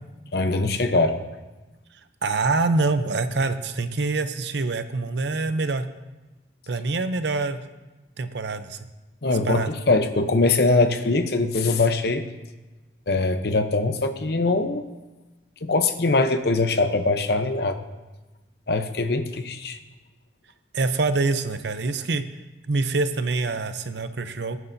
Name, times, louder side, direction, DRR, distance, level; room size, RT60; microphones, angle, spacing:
voice 1, 0.3-1.2 9.2-12.2 13.1-14.9 15.6-17.8 18.7-19.8, left 3 dB, 60° left, 8 dB, 0.8 m, -22 dB
voice 2, 2.2-5.9 6.7-7.6 8.2-8.8 9.4-9.7 20.7-22.3 22.7-24.6, right 3 dB, 70° right, 10 dB, 0.7 m, -25 dB
22.0 x 9.4 x 2.7 m, 1.1 s
head